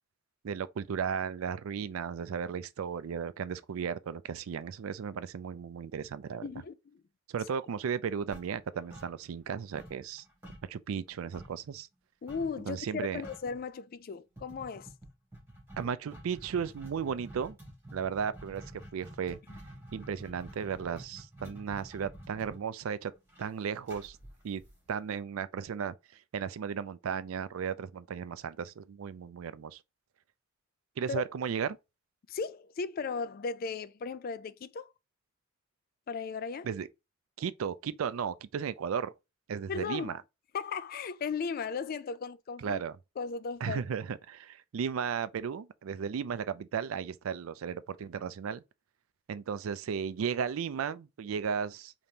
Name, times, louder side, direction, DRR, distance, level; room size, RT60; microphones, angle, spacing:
voice 1, 0.4-6.5 7.3-10.2 10.7-11.9 12.6-13.2 15.8-17.6 17.9-19.4 19.9-23.1 23.4-24.2 24.4-24.6 24.9-25.9 26.3-29.8 31.0-31.8 36.6-36.9 37.4-39.1 39.5-40.2 42.6-43.0 43.6-48.6 49.3-51.9, right 7 dB, 85° right, 0.4 m, -35 dB
voice 2, 6.4-7.0 12.2-14.9 19.5-19.6 21.4-21.6 31.1-31.2 32.3-34.9 36.1-36.7 39.7-40.1 40.5-42.8 43.2-43.9, left 5 dB, 45° left, 0.3 m, -36 dB
sound 1, 8.3-9.5 9.8-11.7 12.3-12.6 12.9-13.0 13.2-13.6 14.4-25.2, right 1 dB, 10° right, 2.5 m, -49 dB
5.1 x 3.0 x 2.7 m
head